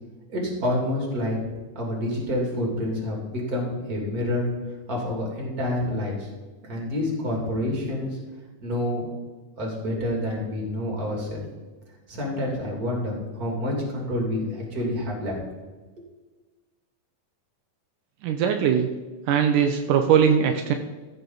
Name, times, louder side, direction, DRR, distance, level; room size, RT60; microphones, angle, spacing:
voice 1, 0.3-1.4 1.7-4.5 4.9-6.3 6.6-8.2 8.6-9.1 9.6-11.4 12.1-15.3 16.0-16.1, left 1 dB, 30° right, -1 dB, 3.0 m, -28 dB
voice 2, 18.2-18.9 19.3-20.7, right 8 dB, 80° right, 5 dB, 2.2 m, -20 dB
15.0 x 6.8 x 3.9 m, 1.3 s
omnidirectional pair, 3.7 m